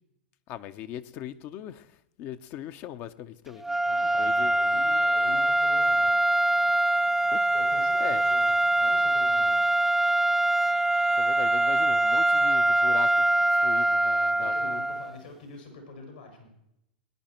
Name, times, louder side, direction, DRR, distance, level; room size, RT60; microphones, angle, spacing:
voice 1, 0.5-3.6 4.0-4.6 7.3-7.5 8.0-8.2 11.1-13.1 13.5-14.8, left 11 dB, 45° left, 11 dB, 0.8 m, -39 dB
sound 1, 3.6-15.2, right 2 dB, 5° right, 0.4 m, -23 dB
voice 2, 3.8-6.1 7.5-9.6 14.4-16.5, left 3 dB, 80° left, 1 dB, 5.7 m, -45 dB
21.0 x 10.0 x 4.5 m, 0.78 s
figure-of-eight pair, 95°, 5 cm